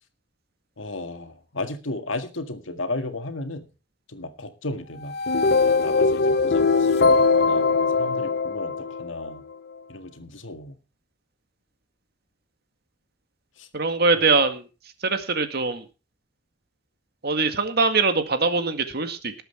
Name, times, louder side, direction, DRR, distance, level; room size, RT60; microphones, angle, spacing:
voice 1, 0.8-3.7 4.1-5.2 5.8-9.4 9.9-10.8 13.6-13.7 14.1-14.4, left 2 dB, 85° left, 7 dB, 1.9 m, -34 dB
sound 1, 5.0-9.3, left 4 dB, 55° left, 0.7 m, -21 dB
voice 2, 13.7-14.7 15.0-15.8 17.2-19.4, right 4 dB, 55° right, 8 dB, 2.0 m, -22 dB
19.0 x 8.0 x 4.5 m, 0.33 s
head